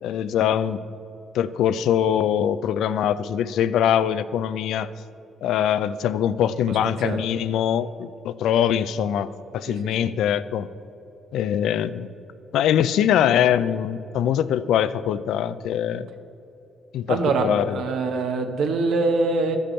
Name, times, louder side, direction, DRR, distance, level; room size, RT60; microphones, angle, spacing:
voice 1, 0.0-0.8 1.3-4.9 5.4-10.7 11.3-12.1 12.5-16.1 16.9-17.8, left 9 dB, 80° left, 14 dB, 0.3 m, -23 dB
voice 2, 9.7-10.1 17.1-19.6, right 3 dB, 75° right, 5 dB, 0.8 m, -24 dB
13.0 x 5.3 x 4.3 m, 2.9 s
cardioid pair, 90°, 0 cm